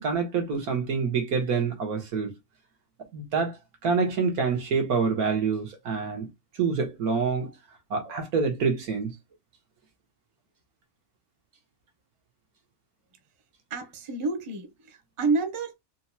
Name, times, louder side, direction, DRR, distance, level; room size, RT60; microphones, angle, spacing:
voice 1, 0.0-2.3 3.1-6.3 6.5-7.5 7.9-9.2, right 5 dB, 85° right, 1.8 m, -27 dB
voice 2, 13.7-15.7, right 3 dB, 25° right, 0.7 m, -29 dB
4.5 x 2.9 x 2.2 m
omnidirectional pair, 1.5 m